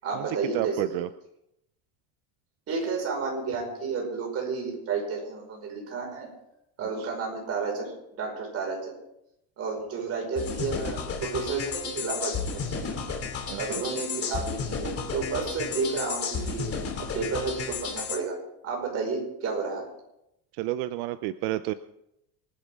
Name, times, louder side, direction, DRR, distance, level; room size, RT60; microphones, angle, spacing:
voice 1, 0.0-0.9 2.7-6.3 6.8-7.9 8.2-8.9 9.6-13.0 13.5-16.7 17.0-18.4 18.6-19.9, right 4 dB, 40° right, 1 dB, 5.3 m, -31 dB
voice 2, 0.5-1.1 7.0-7.1 13.5-13.8 20.6-21.7, right 15 dB, 85° right, 12 dB, 0.7 m, -30 dB
sound 1, 10.4-18.2, left 6 dB, 35° left, 2.9 m, -33 dB
25.0 x 10.5 x 3.7 m, 0.83 s
cardioid pair, 155°, 37 cm